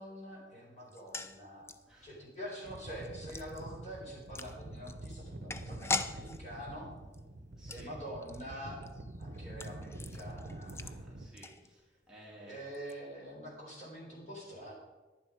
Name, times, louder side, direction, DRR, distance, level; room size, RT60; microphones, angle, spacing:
voice 1, 0.0-1.6 2.0-6.9 7.7-8.8 9.2-10.8 12.4-14.7, equal, 40° left, -4 dB, 4.5 m, -45 dB
sound 1, 0.9-12.1 12.4-12.5 12.7-12.9, left 3 dB, 15° left, 0.4 m, -43 dB
sound 2, 2.6-11.3, right 1 dB, 60° right, 0.9 m, -46 dB
voice 2, 7.5-7.9 10.5-12.6, right 1 dB, 5° right, -7 dB, 2.6 m, -56 dB
10.5 x 10.5 x 5.1 m, 1.2 s
head